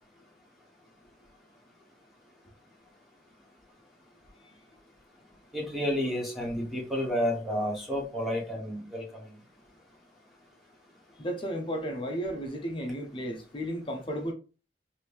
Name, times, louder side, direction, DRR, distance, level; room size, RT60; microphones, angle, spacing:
voice 1, 5.5-9.3, equal, ahead, 1.0 m, -31 dB
voice 2, 11.2-14.3, equal, 30° left, 0.5 m, -33 dB
2.9 x 2.6 x 3.4 m
head